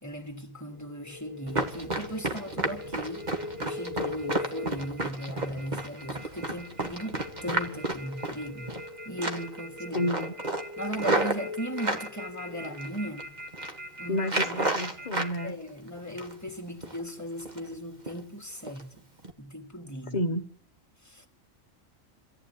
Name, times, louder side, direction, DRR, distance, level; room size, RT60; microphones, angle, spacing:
voice 1, 0.0-3.3 3.6-8.7 9.0-10.1 10.8-13.3 14.0-14.8 15.4-18.9 19.4-20.2 21.0-21.3, equal, 15° left, 2.6 m, -37 dB
sound 1, 0.7-15.5, left 2 dB, 60° right, 2.9 m, -41 dB
Run, 1.5-8.9 9.2-9.6 9.9-12.1 12.6-13.2 13.5-13.8 14.2-15.3 15.7-16.5 16.8-17.0 17.4-17.7 18.1-18.2 18.7-18.8 19.2-19.3, right 2 dB, 35° right, 2.2 m, -31 dB
voice 2, 9.9-10.3 14.1-15.6 20.1-20.4, left 1 dB, 35° left, 1.1 m, -30 dB
25.0 x 15.0 x 9.5 m
omnidirectional pair, 1.3 m